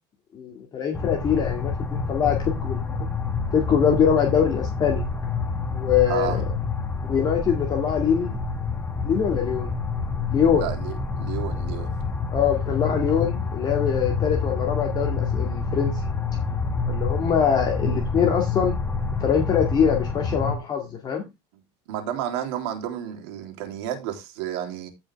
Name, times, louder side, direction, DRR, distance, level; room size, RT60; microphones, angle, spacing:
voice 1, 0.3-3.1 3.5-5.0 5.7-6.4 7.1-8.4 9.0-9.7 10.3-10.7 12.3-15.9 16.9-18.7 19.2-21.2, left 7 dB, 30° left, 2.3 m, -23 dB
sound 1, 0.9-20.6, left 4 dB, 15° left, 1.6 m, -27 dB
voice 2, 6.1-6.4 10.6-11.9 21.9-24.9, right 10 dB, 80° right, 3.5 m, -31 dB
15.0 x 5.6 x 3.5 m
cardioid pair, 145°, 13 cm